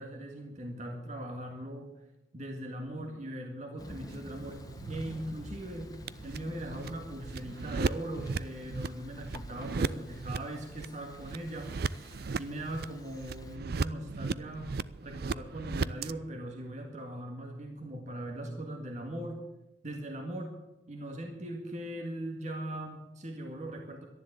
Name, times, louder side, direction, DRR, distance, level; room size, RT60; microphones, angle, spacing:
voice 1, 0.0-1.9 2.3-5.9 6.2-14.8 15.0-19.4 19.8-20.5 20.9-24.1, right 1 dB, 45° right, 2 dB, 2.0 m, -40 dB
Thunder, 3.8-13.6, left 1 dB, 20° left, 1.5 m, -49 dB
sound 1, 4.1-16.1, right 4 dB, 60° right, 0.5 m, -37 dB
12.5 x 11.0 x 8.9 m, 0.96 s
head